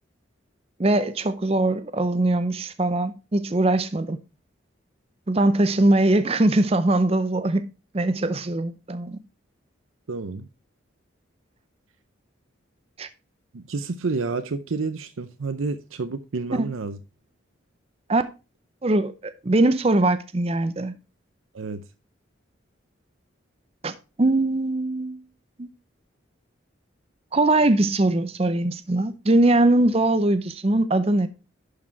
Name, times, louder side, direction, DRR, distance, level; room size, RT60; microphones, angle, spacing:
voice 1, 0.8-4.2 5.3-7.6 7.9-9.2 13.0-13.1 16.5-16.7 18.1-18.2 18.8-20.9 23.8-25.2 25.6-25.7 27.3-31.3, right 2 dB, 30° right, 0.6 m, -21 dB
voice 2, 10.1-10.5 13.5-17.0 21.5-21.8, right 4 dB, 85° right, 0.6 m, -29 dB
11.5 x 4.8 x 4.6 m
head